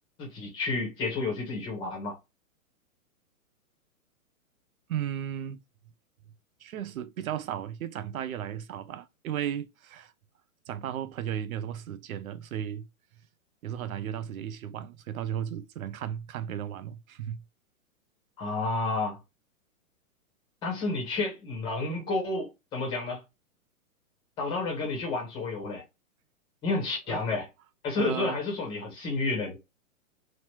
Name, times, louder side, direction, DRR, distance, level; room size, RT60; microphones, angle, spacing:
voice 1, 0.2-2.2 18.4-19.2 20.6-23.2 24.4-25.8 26.6-27.5 27.8-29.6, left 3 dB, 10° left, 0.7 m, -30 dB
voice 2, 4.9-5.6 6.6-10.1 10.7-12.9 13.6-17.4 27.1-27.2 28.0-28.4, right 10 dB, 70° right, 0.6 m, -35 dB
3.0 x 2.0 x 3.0 m
hypercardioid pair, 155°, 44 cm